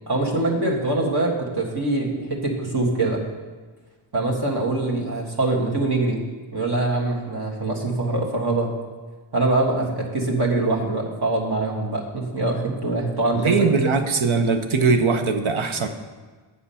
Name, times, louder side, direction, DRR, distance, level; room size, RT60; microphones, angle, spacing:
voice 1, 0.1-3.2 4.1-6.2 6.5-8.7 9.3-13.6, right 2 dB, 50° right, -2 dB, 1.9 m, -23 dB
voice 2, 13.3-15.9, right 4 dB, 70° right, 6 dB, 0.9 m, -20 dB
8.5 x 7.1 x 5.7 m, 1.4 s
wide cardioid pair, 85°, 50 cm